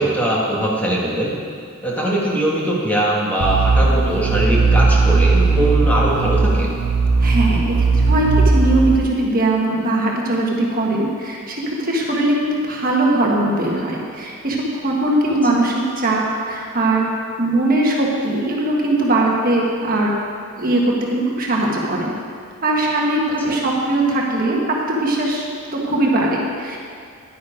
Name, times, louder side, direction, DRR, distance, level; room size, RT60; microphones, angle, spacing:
voice 1, 0.0-1.4 1.8-6.7 15.3-15.4 23.5-23.6, right 1 dB, 5° left, -5 dB, 1.6 m, -21 dB
sound 1, 3.4-9.0, right 3 dB, 80° right, 0.6 m, -17 dB
voice 2, 7.2-17.1 17.4-20.1 20.6-22.1 22.6-25.4 25.7-26.8, right 2 dB, 40° right, -2 dB, 1.5 m, -20 dB
11.0 x 9.7 x 5.0 m, 2.3 s
head